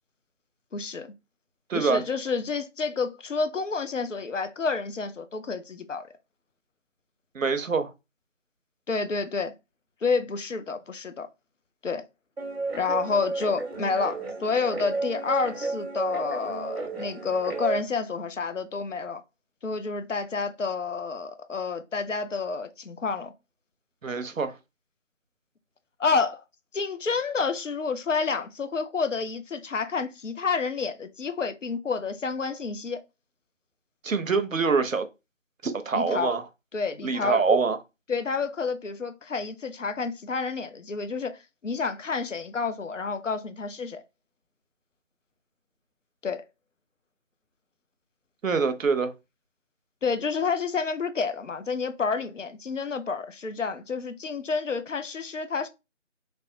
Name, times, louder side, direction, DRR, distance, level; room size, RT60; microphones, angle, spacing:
voice 1, 0.7-1.1 1.7-6.1 8.9-9.5 10.0-11.3 11.8-12.0 12.7-19.2 19.6-23.3 26.0-26.4 26.7-33.0 35.9-36.4 36.7-37.4 38.1-44.0 46.2-46.4 50.0-55.7, left 4 dB, 75° left, 0.5 m, -29 dB
voice 2, 1.7-2.0 7.3-7.9 24.0-24.5 34.0-35.0 35.6-36.4 37.0-37.8 48.4-49.1, right 4 dB, 90° right, 0.6 m, -25 dB
Guitar, 12.4-17.8, right 3 dB, 55° right, 0.9 m, -32 dB
3.3 x 2.1 x 2.5 m
figure-of-eight pair, 175°, 38 cm